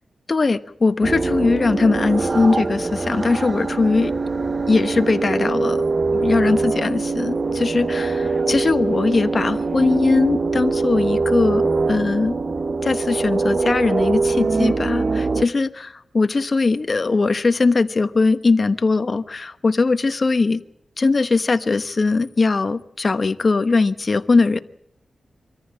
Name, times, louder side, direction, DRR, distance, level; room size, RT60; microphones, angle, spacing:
voice 1, 0.3-4.1 4.7-5.8 6.1-12.4 12.8-20.6 21.0-24.6, left 3 dB, 45° left, 10 dB, 1.1 m, -20 dB
sound 1, 1.0-15.5, right 3 dB, 45° right, 0.8 m, -23 dB
24.5 x 14.0 x 8.7 m, 0.74 s
cardioid pair, 75°, 0 cm